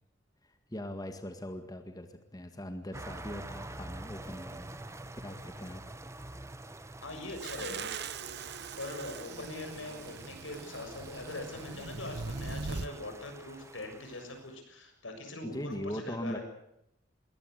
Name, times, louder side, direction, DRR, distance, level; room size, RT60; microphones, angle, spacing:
voice 1, 0.4-4.7 5.2-5.8 6.3-6.6 15.4-16.4, left 1 dB, 20° left, 6 dB, 1.9 m, -40 dB
sound 1, 2.9-14.6, right 2 dB, 15° right, 1.2 m, -47 dB
voice 2, 7.0-7.9 8.8-16.4, left 2 dB, 85° left, 5 dB, 6.9 m, -42 dB
sound 2, 7.4-12.9, right 4 dB, 60° right, 1.0 m, -41 dB
22.0 x 18.5 x 8.3 m, 0.81 s
head